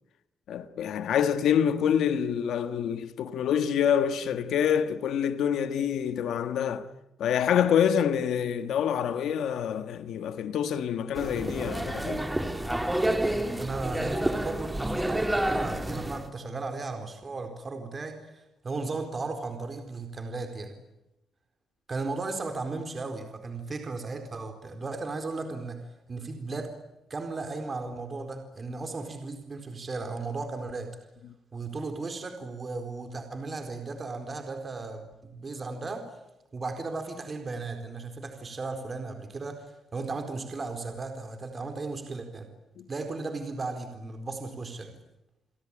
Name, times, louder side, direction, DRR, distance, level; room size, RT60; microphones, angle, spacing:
voice 1, 0.5-6.9 7.2-12.2 42.8-42.9, left 8 dB, 80° left, 1.6 m, -26 dB
sound 1, 11.2-16.3, right 1 dB, 10° right, 3.0 m, -29 dB
voice 2, 13.5-20.8 21.9-26.7 27.1-30.9 31.5-36.1 36.5-42.5 42.9-45.0, right 3 dB, 30° right, 4.3 m, -36 dB
29.5 x 22.5 x 8.9 m
cardioid pair, 125°, 0 cm